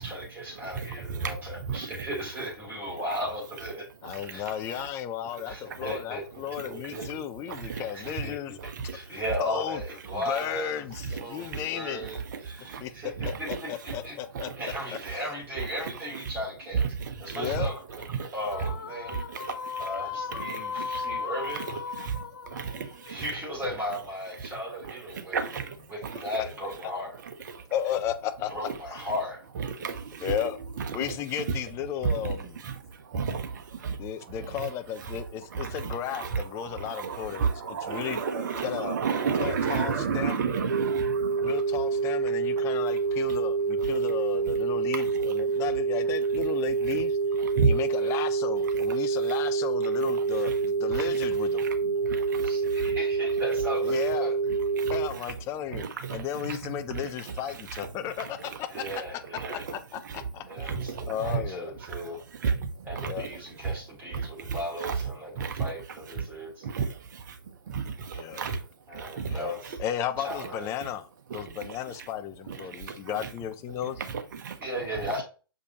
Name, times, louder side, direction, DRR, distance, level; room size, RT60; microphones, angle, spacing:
voice 1, 0.0-3.9 4.3-4.4 5.4-7.2 7.6-10.8 11.1-14.2 14.6-16.8 17.2-19.2 19.8-21.7 23.0-25.5 25.9-27.1 28.5-29.4 52.4-54.3 58.7-59.7 60.5-62.2 62.8-66.6 68.9-69.8 70.2-70.7 74.6-75.2, equal, 15° right, 3.5 m, -36 dB
voice 2, 0.7-1.9 5.7-5.8 7.5-8.1 8.6-8.9 11.2-11.6 12.1-12.4 12.6-12.8 13.2-13.6 14.3-14.6 16.7-17.6 18.1-18.3 19.1-19.9 20.4-21.1 21.9-23.2 25.1-25.8 26.0-26.2 27.5-27.6 29.6-30.3 30.9-31.1 31.5-31.6 32.0-32.3 32.6-32.7 33.1-34.1 35.1-35.2 35.5-41.6 43.3-43.4 44.9-45.1 47.5-47.7 50.4-50.6 50.9-51.1 51.6-53.0 54.7-55.0 55.7-56.6 56.9-57.0 58.2-58.6 59.4-59.5 60.0-60.2 60.6-61.4 62.4-63.1 64.1-65.0 65.4-65.7 66.2-66.3 66.6-67.4 67.7-68.6 68.9-69.4 71.3-71.4 72.5-73.3 74.1-74.6, right 6 dB, 50° right, 1.1 m, -32 dB
voice 3, 4.0-8.5 9.4-9.8 10.1-12.0 12.8-12.9 13.2-14.5 15.1-15.3 17.3-17.7 27.7-29.0 30.2-30.6 30.9-32.6 34.0-38.2 38.6-39.0 39.4-40.5 41.4-47.2 47.6-51.7 53.8-54.3 54.9-58.8 59.5-60.7 61.1-61.7 63.0-63.3 68.1-68.4 69.3-69.5 69.8-71.1 71.3-74.0, left 10 dB, 20° left, 0.6 m, -34 dB
sound 1, 18.5-23.9, left 6 dB, 55° left, 0.7 m, -37 dB
sound 2, 40.7-55.1, right 5 dB, 90° right, 0.7 m, -27 dB
6.6 x 5.1 x 2.9 m
figure-of-eight pair, 125°, 13 cm